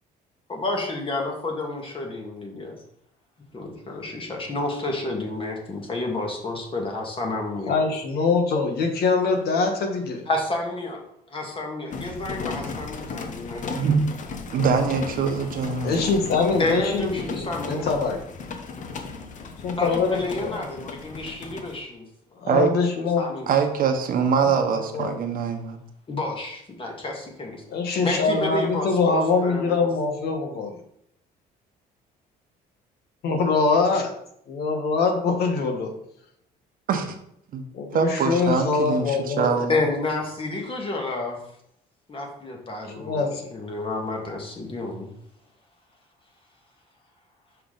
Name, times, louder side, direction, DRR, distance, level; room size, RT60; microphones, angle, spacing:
voice 1, 0.5-2.8 3.5-7.8 10.3-11.0 11.3-14.0 16.6-17.9 19.8-22.0 23.2-23.5 26.1-27.6 28.0-29.9 39.7-41.4 42.1-45.1, left 2 dB, 30° left, 1 dB, 1.9 m, -30 dB
voice 2, 7.7-10.2 15.8-18.2 19.6-20.6 22.4-23.3 24.4-25.1 27.7-30.7 33.2-34.1 34.5-35.9 37.7-39.6 43.0-43.5, left 4 dB, 70° left, 4 dB, 1.3 m, -23 dB
sound 1, 11.9-21.8, left 4 dB, 45° left, 0.9 m, -35 dB
voice 3, 14.5-16.1 22.5-22.7 23.5-25.8 36.9-37.1 37.5-37.6 37.9-39.8, right 6 dB, 55° right, 5 dB, 1.1 m, -23 dB
5.8 x 5.7 x 3.9 m, 0.73 s
cardioid pair, 110°, 17 cm